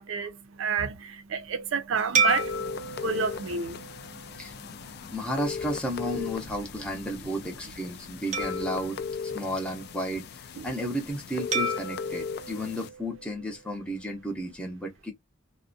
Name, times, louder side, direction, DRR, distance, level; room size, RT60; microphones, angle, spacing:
voice 1, 0.0-5.1 10.5-10.7, right 5 dB, 80° right, 0.5 m, -32 dB
sound 1, 2.1-4.8 5.4-5.6 8.3-10.1 11.5-13.8, right 3 dB, 40° right, 0.6 m, -32 dB
sound 2, 2.3-12.9, left 6 dB, 55° left, 0.3 m, -38 dB
voice 2, 5.1-15.1, equal, 5° left, 0.5 m, -33 dB
2.3 x 2.1 x 2.5 m
head